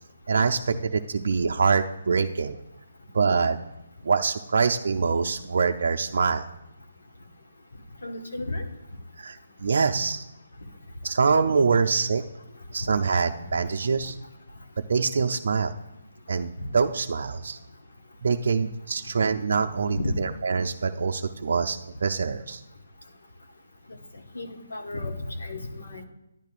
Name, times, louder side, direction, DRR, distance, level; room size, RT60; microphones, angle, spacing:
voice 1, 0.3-2.6 3.1-3.6 4.0-6.5 9.2-10.2 11.0-12.2 12.7-14.1 14.9-15.7 16.3-17.6 18.2-22.6, right 5 dB, 65° right, 4 dB, 0.4 m, -24 dB
voice 2, 8.0-8.6 16.6-16.7 20.0-20.1 24.3-26.0, left 2 dB, 85° left, 3 dB, 1.4 m, -33 dB
10.5 x 10.5 x 2.5 m, 0.88 s
hypercardioid pair, 160°, 0 cm